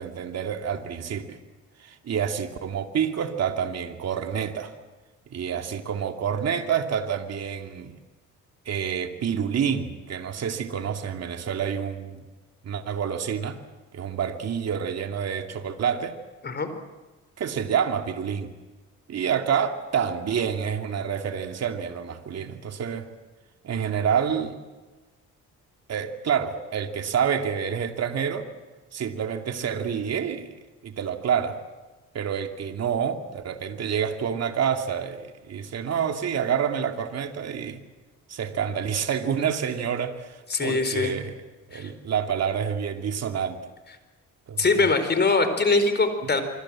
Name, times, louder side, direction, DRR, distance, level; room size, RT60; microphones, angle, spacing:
voice 1, 0.0-1.4 1.8-4.7 5.3-8.0 8.7-12.2 12.6-13.6 13.9-16.2 17.4-18.5 19.1-23.1 23.6-24.6 25.9-28.5 28.9-30.5 30.8-31.6 32.1-37.8 38.3-41.4 41.7-43.6 44.5-44.8, right 7 dB, 55° right, 6 dB, 2.7 m, -28 dB
voice 2, 40.5-41.1 41.7-41.9 44.6-46.4, left 3 dB, 35° left, 9 dB, 4.5 m, -22 dB
26.0 x 25.0 x 7.6 m, 1.2 s
cardioid pair, 90°, 30 cm